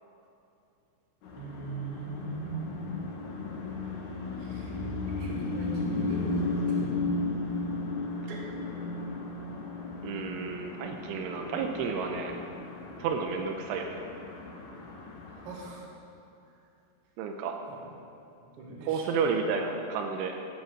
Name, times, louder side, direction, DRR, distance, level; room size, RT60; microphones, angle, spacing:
sound 1, 1.2-15.6, left 2 dB, 60° left, 2.1 m, -35 dB
voice 1, 1.3-3.2 4.4-4.8 5.1-7.0 8.3-8.4 15.4-15.9 18.6-19.1, right 3 dB, 45° right, -3 dB, 2.0 m, -40 dB
voice 2, 10.0-12.4 13.0-14.0 17.2-17.6 18.8-20.4, right 5 dB, 85° right, 4 dB, 3.1 m, -31 dB
15.0 x 8.2 x 6.6 m, 2.7 s
omnidirectional pair, 5.7 m